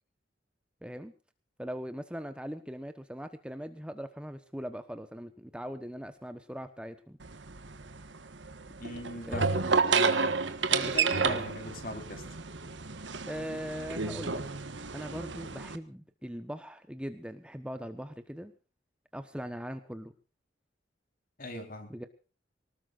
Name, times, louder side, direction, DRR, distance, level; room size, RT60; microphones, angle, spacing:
voice 1, 0.8-1.1 1.6-7.2 9.2-9.5 11.3-11.4 13.3-14.4 14.9-18.5 19.1-20.1 21.9-22.1, equal, 5° right, 9 dB, 1.1 m, -40 dB
sound 1, 7.2-15.8, right 5 dB, 75° right, 1.6 m, -31 dB
voice 2, 8.8-9.6 9.9-10.4 10.7-12.2 21.4-21.9, left 1 dB, 50° left, 6 dB, 4.4 m, -39 dB
24.5 x 19.5 x 2.6 m, 0.35 s
head